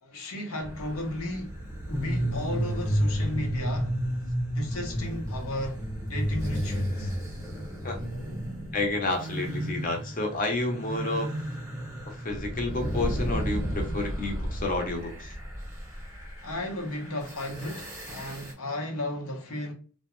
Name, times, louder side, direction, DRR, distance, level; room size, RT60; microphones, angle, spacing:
voice 1, 0.0-1.6 1.9-4.0 4.5-5.8 6.1-7.1 16.4-19.7, left 1 dB, 85° left, 0.8 m, -34 dB
sound 1, 0.6-18.5, equal, 15° right, 0.8 m, -32 dB
voice 2, 8.7-11.3 12.0-15.3, left 2 dB, 40° left, 0.7 m, -30 dB
2.3 x 2.1 x 3.0 m
head